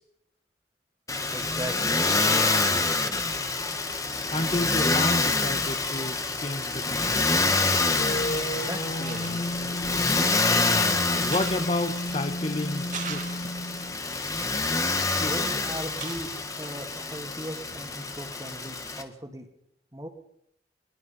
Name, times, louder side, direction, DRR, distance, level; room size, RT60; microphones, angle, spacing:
Motor vehicle (road), 1.1-19.0, left 3 dB, 20° left, 1.7 m, -27 dB
voice 1, 1.3-3.2 8.5-9.7 15.2-19.5 19.9-20.1, right 1 dB, 20° right, 5 dB, 2.6 m, -39 dB
voice 2, 4.3-7.5 11.2-13.4 15.2-15.3, left 2 dB, 35° left, 8 dB, 1.7 m, -31 dB
sound 1, 8.0-14.0, equal, 60° left, 3.4 m, -33 dB
sound 2, 9.0-9.6 10.3-10.8 11.2-12.4 12.8-13.8 14.3-15.6 15.9-16.5, right 6 dB, 45° right, 2.3 m, -42 dB
23.0 x 21.0 x 5.7 m, 0.75 s
head